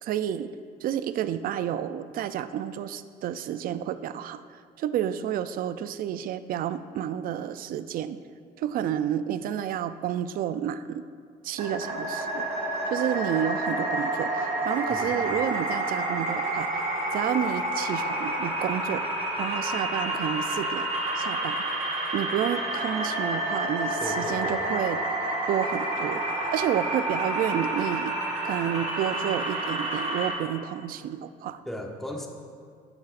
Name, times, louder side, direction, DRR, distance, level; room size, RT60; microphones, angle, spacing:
voice 1, 0.0-0.5 0.8-4.4 4.8-8.2 8.6-11.1 11.4-12.4 12.9-16.8 17.1-19.0 19.4-20.9 21.2-21.7 22.1-25.0 25.5-26.2 26.5-28.2 28.4-31.6, right 10 dB, 60° right, 13 dB, 0.4 m, -30 dB
sound 1, 11.6-30.3, right 1 dB, 40° right, 1.7 m, -29 dB
voice 2, 24.0-24.7 31.7-32.3, equal, ahead, 1 dB, 0.9 m, -36 dB
10.5 x 7.5 x 2.5 m, 2.1 s
cardioid pair, 110°, 17 cm